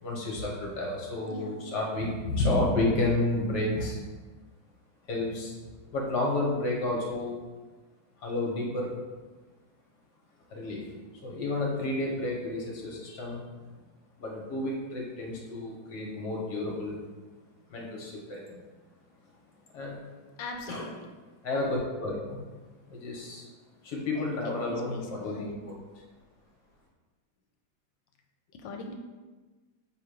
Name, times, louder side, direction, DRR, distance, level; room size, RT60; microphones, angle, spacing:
voice 1, 0.0-4.0 5.1-5.5 5.9-7.4 8.2-9.0 10.5-10.8 11.2-13.4 14.2-17.0 17.7-18.6 19.7-20.0 20.7-20.9 21.4-22.4 22.9-23.5 23.8-25.5, left 2 dB, 65° left, -2 dB, 1.9 m, -31 dB
voice 2, 1.3-1.7 20.4-20.9 24.1-25.5 28.5-28.9, left 2 dB, 85° left, 3 dB, 1.5 m, -40 dB
7.1 x 2.9 x 5.0 m, 1.3 s
omnidirectional pair, 2.0 m